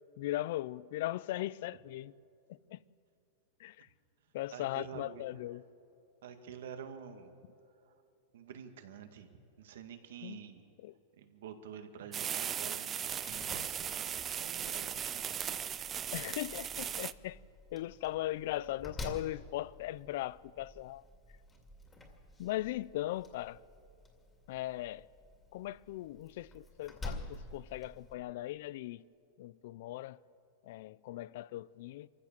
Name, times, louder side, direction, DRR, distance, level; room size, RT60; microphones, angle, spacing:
voice 1, 0.2-2.1 2.5-2.8 3.6-3.9 4.3-5.6 10.2-10.4 10.8-10.9 16.1-17.4 17.7-21.0 22.4-23.6 24.5-25.1 25.5-29.0 29.4-30.2 30.6-32.1, left 15 dB, 60° left, 0.5 m, -39 dB
voice 2, 4.2-5.3 6.2-7.3 7.8-7.9 8.3-10.6 11.2-15.6, right 8 dB, 75° right, 2.0 m, -49 dB
sound 1, 12.1-17.1, right 9 dB, 20° right, 0.4 m, -37 dB
Slam, 13.1-28.1, left 2 dB, 10° left, 2.3 m, -50 dB
25.0 x 15.0 x 7.4 m
supercardioid pair, 155°, 0 cm